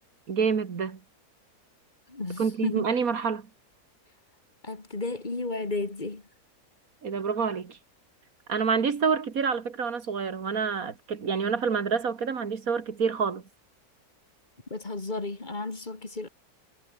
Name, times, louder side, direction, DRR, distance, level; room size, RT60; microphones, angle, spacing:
voice 1, 0.3-1.0 2.4-3.5 7.0-7.8 8.5-13.4, right 5 dB, 65° right, 2.2 m, -27 dB
voice 2, 2.1-2.9 4.6-6.3 14.7-16.3, left 3 dB, 30° left, 2.4 m, -33 dB
omnidirectional pair, 1.6 m